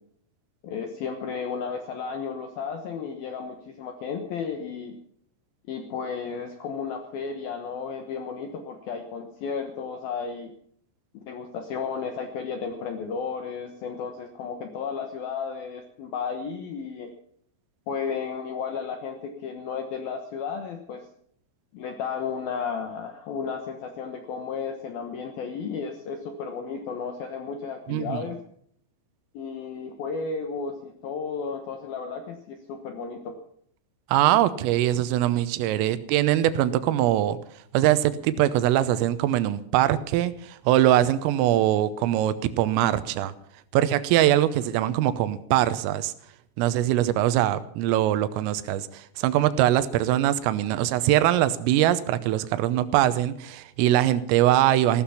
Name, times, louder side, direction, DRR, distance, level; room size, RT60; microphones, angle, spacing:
voice 1, 0.6-5.0 5.7-10.5 11.1-17.1 17.9-21.1 21.7-28.4 29.3-33.4, left 6 dB, 70° left, 6 dB, 2.2 m, -33 dB
voice 2, 27.9-28.2 34.1-37.4 37.7-43.3 43.7-46.1 46.6-55.0, right 13 dB, 80° right, 14 dB, 3.5 m, -22 dB
16.5 x 13.0 x 5.7 m, 0.65 s
omnidirectional pair, 6.0 m